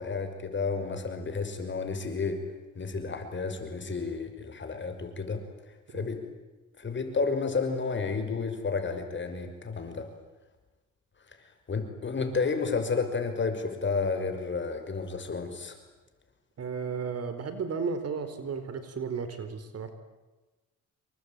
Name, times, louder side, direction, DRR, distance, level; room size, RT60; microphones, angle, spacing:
voice 1, 0.0-2.4 2.8-5.4 5.9-6.2 6.8-10.1 11.7-15.8, left 4 dB, 40° left, 7 dB, 5.8 m, -31 dB
voice 2, 16.6-19.9, right 5 dB, 55° right, 10 dB, 4.2 m, -34 dB
27.5 x 23.0 x 9.0 m, 1.1 s
cardioid pair, 90°, 30 cm